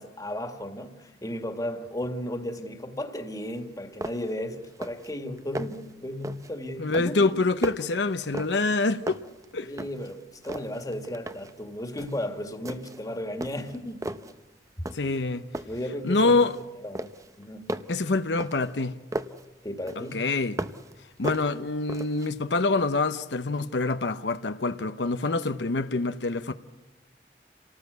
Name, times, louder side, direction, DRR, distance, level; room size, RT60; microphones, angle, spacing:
voice 1, 0.0-7.3 9.6-14.1 15.7-16.5 16.8-17.1 17.4-17.7 19.6-20.2, left 1 dB, 20° left, 2.0 m, -35 dB
sound 1, 3.6-3.7 4.0-4.4 4.7-5.1 5.4-5.9 6.2-6.6 6.9-8.8 9.1-10.1 10.4-11.6 12.0-12.3 12.7-13.1 13.4-14.4 14.9-15.2 15.5-16.6 17.0-19.5 19.9-20.9 21.2-22.3, right 1 dB, 20° right, 0.8 m, -36 dB
voice 2, 6.8-9.2 9.5-9.7 14.9-15.5 16.0-16.6 17.9-19.0 20.1-20.6 21.2-26.5, left 3 dB, 80° left, 0.8 m, -26 dB
28.0 x 18.5 x 8.2 m
head